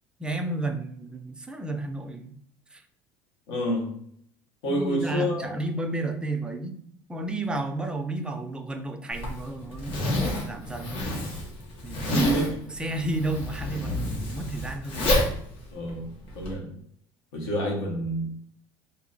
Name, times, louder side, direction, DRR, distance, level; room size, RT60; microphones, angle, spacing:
voice 1, 0.2-2.3 2.7-2.8 4.6-6.7 7.1-11.1 11.8-12.3 12.6-15.2, right 2 dB, 10° right, 5 dB, 0.4 m, -32 dB
voice 2, 3.5-4.0 4.6-5.5 12.1-12.5 15.7-16.1 16.3-16.7 17.3-18.3, equal, 90° left, -1 dB, 1.3 m, -28 dB
Zipper (clothing), 9.1-16.5, left 1 dB, 55° left, 1.4 m, -29 dB
2.9 x 2.7 x 3.9 m, 0.67 s
cardioid pair, 125°, 11 cm